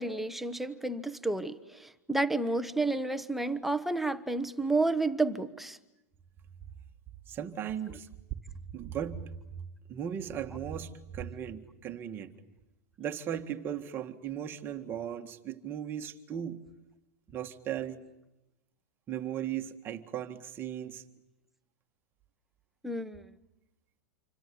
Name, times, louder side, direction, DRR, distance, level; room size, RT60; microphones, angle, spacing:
voice 1, 0.0-5.8 22.8-23.3, right 2 dB, ahead, 1.0 m, -31 dB
voice 2, 7.3-8.1 8.7-9.6 9.9-12.3 13.0-16.6 17.3-18.0 19.1-21.0, right 9 dB, 25° right, 1.8 m, -37 dB
27.0 x 25.5 x 8.6 m
supercardioid pair, 145°, 9 cm